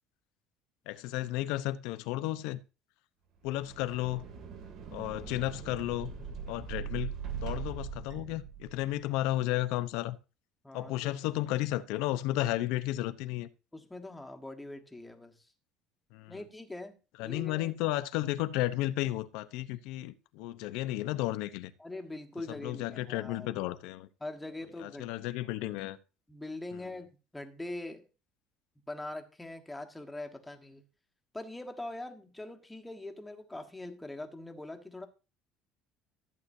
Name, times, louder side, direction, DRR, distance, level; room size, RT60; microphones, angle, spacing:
voice 1, 0.9-2.6 3.4-4.2 4.9-6.1 6.5-7.1 7.4-10.2 10.7-13.5 16.1-16.4 17.2-21.7 22.6-24.1 24.8-26.0, left 16 dB, 80° left, 0.8 m, -33 dB
sound 1, 3.4-9.0, right 7 dB, 60° right, 2.8 m, -41 dB
voice 2, 10.6-11.1 13.7-15.5 16.3-17.0 17.2-17.7 21.8-23.5 24.2-25.1 26.3-28.1 28.9-30.8 31.3-35.1, left 2 dB, 5° left, 1.5 m, -42 dB
14.5 x 8.3 x 2.7 m
cardioid pair, 130°, 0 cm